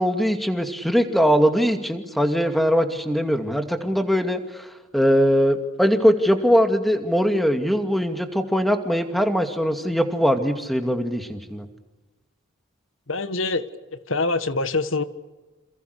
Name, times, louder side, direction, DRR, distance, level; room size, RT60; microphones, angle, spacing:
voice 1, 0.0-11.7, equal, ahead, 2.4 m, -21 dB
voice 2, 13.1-13.6 14.1-15.0, left 3 dB, 85° left, 1.6 m, -24 dB
28.5 x 28.0 x 6.7 m
head